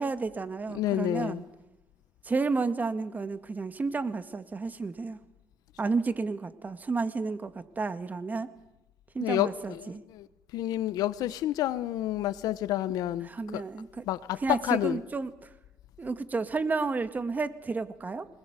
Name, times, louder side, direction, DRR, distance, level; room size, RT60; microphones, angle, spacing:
voice 1, 0.0-1.4 2.2-5.2 5.8-8.5 9.1-10.0 13.2-14.1 14.4-15.5 16.0-18.3, right 4 dB, 25° right, 1.9 m, -31 dB
voice 2, 0.7-1.4 9.2-10.3 10.5-13.6 14.0-15.0, left 13 dB, 75° left, 1.0 m, -29 dB
25.0 x 20.5 x 8.3 m
cardioid pair, 95°, 7 cm